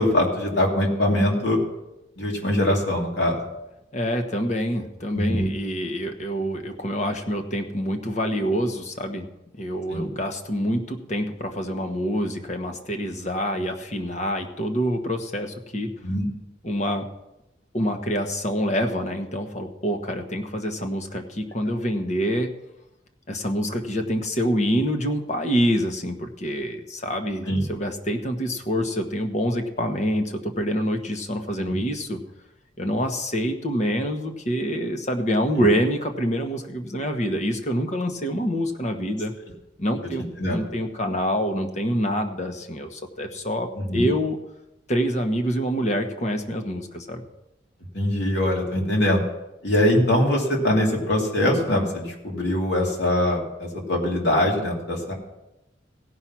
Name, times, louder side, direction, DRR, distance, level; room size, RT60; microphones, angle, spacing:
voice 1, 0.0-1.6 2.2-3.4 5.1-5.5 9.9-10.1 16.0-16.3 27.4-27.6 31.7-31.8 40.4-40.6 43.8-44.1 47.9-49.2 49.6-55.1, left 1 dB, 65° left, -1 dB, 2.8 m, -22 dB
voice 2, 3.9-15.9 16.6-17.1 17.7-22.6 23.3-32.2 32.8-39.3 39.8-44.4 44.9-47.3, equal, 40° left, 5 dB, 1.2 m, -26 dB
17.0 x 5.7 x 6.1 m, 0.92 s
head